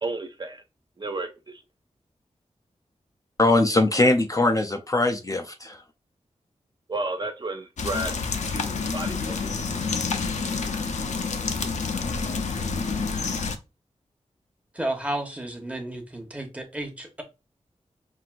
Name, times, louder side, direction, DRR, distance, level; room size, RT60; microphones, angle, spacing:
voice 1, 0.0-0.6 1.0-1.6 6.9-8.1 8.5-9.4, right 2 dB, 40° right, 0.5 m, -32 dB
voice 2, 3.4-5.8, left 2 dB, 30° left, 0.4 m, -21 dB
sound 1, 7.8-13.6, left 4 dB, 75° left, 0.6 m, -28 dB
voice 3, 14.7-17.2, right 1 dB, 10° right, 1.1 m, -32 dB
5.8 x 2.6 x 2.5 m
wide cardioid pair, 110°, 12 cm